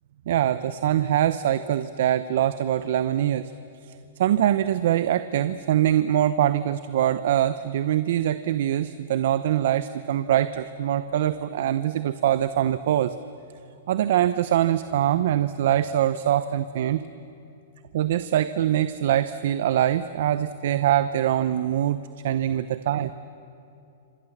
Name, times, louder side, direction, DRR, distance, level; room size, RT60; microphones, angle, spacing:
voice 1, 0.3-3.5 3.8-13.2 13.9-17.0 17.9-22.0 22.2-23.1, right 11 dB, 60° right, 13 dB, 0.8 m, -23 dB
28.0 x 26.5 x 7.4 m, 2.7 s
hypercardioid pair, 150°, 0 cm